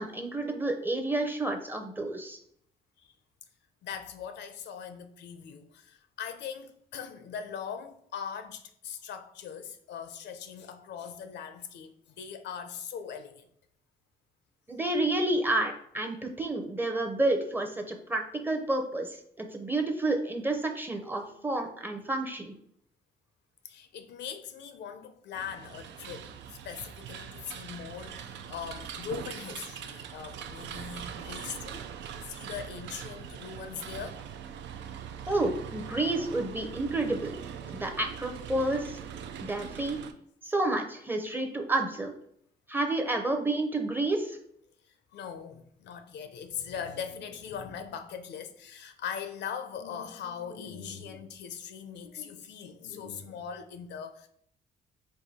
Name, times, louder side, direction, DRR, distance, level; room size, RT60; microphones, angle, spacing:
voice 1, 0.0-2.4 14.7-22.5 35.3-37.3 37.7-39.0 39.4-40.0 40.4-42.1 42.7-44.4, right 2 dB, 10° right, 0.6 m, -30 dB
voice 2, 3.8-13.5 23.6-34.2 41.2-41.3 44.8-54.3, left 7 dB, 75° left, 0.5 m, -41 dB
sound 1, 25.3-40.1, right 8 dB, 85° right, 0.4 m, -42 dB
4.7 x 2.6 x 4.1 m
cardioid pair, 135°, 18 cm